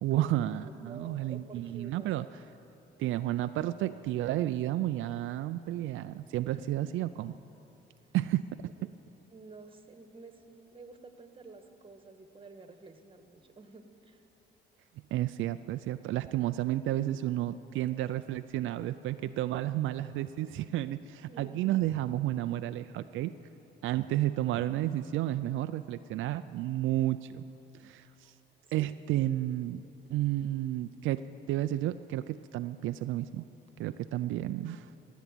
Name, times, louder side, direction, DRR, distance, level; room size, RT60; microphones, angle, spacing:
voice 1, 0.0-2.3 3.0-7.3 8.1-8.4 15.1-23.3 23.8-27.4 27.8-28.3 28.7-29.8 30.1-33.4 33.8-34.9, right 14 dB, 80° right, 10 dB, 0.4 m, -31 dB
voice 2, 0.6-2.1 6.5-6.7 8.8-8.9 9.3-14.2 21.3-21.8 28.6-29.3, right 3 dB, 25° right, 7 dB, 1.4 m, -51 dB
17.0 x 8.3 x 9.0 m, 2.8 s
cardioid pair, 90°, 20 cm